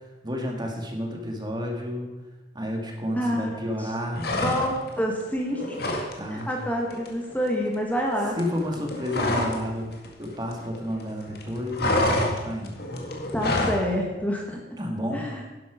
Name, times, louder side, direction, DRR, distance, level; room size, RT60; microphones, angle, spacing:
voice 1, 0.2-2.1 2.5-4.3 6.2-6.5 8.4-9.9 10.2-12.8 14.8-15.3, left 1 dB, 25° right, 1 dB, 1.9 m, -31 dB
voice 2, 3.1-3.6 4.3-5.8 6.3-8.4 13.3-14.6 15.1-15.4, equal, 10° left, 0 dB, 1.6 m, -27 dB
sound 1, 4.1-5.0 5.3-6.1 6.4-6.6 6.9-9.7 9.9-11.0 11.3-13.8, left 1 dB, 60° left, 2.0 m, -27 dB
11.5 x 11.0 x 5.1 m, 1.1 s
head